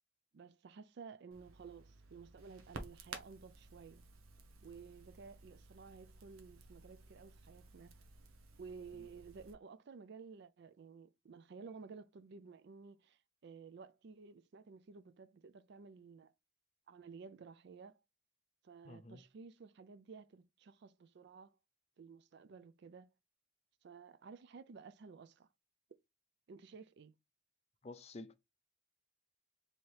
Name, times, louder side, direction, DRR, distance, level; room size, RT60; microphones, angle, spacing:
voice 1, 0.3-4.0 4.6-8.0 8.6-16.3 16.9-18.0 18.6-21.6 22.0-23.1 23.8-25.5 26.5-27.1, right 5 dB, 55° right, 0.4 m, -54 dB
Crackle, 1.3-9.5, right 3 dB, 85° right, 0.8 m, -55 dB
voice 2, 18.8-19.2 27.8-28.3, left 2 dB, 30° left, 0.4 m, -50 dB
3.2 x 2.9 x 4.4 m
head